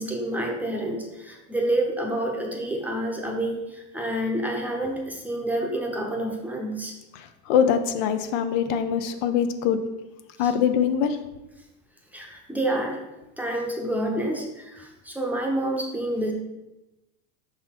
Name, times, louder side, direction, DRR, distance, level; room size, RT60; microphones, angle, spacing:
voice 1, 0.0-6.9 12.1-13.0 13.4-16.3, right 1 dB, 5° right, 0 dB, 0.7 m, -28 dB
voice 2, 7.1-9.8 10.4-11.2, left 8 dB, 75° left, 9 dB, 0.7 m, -23 dB
5.5 x 4.0 x 4.3 m, 0.99 s
supercardioid pair, 130°, 38 cm